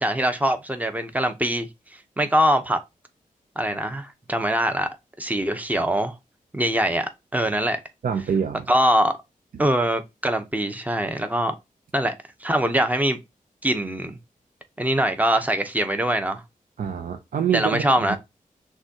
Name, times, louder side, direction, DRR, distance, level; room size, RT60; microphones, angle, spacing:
voice 1, 0.0-1.7 2.2-2.8 3.6-4.9 5.2-6.1 6.5-7.8 8.7-9.1 9.6-11.5 11.9-12.1 12.4-13.2 13.6-14.2 14.8-16.4 17.5-18.2, right 1 dB, 10° right, 0.7 m, -23 dB
voice 2, 8.0-8.6 16.8-18.2, right 8 dB, 70° right, 0.5 m, -26 dB
5.9 x 2.3 x 2.7 m
wide cardioid pair, 80°, 15 cm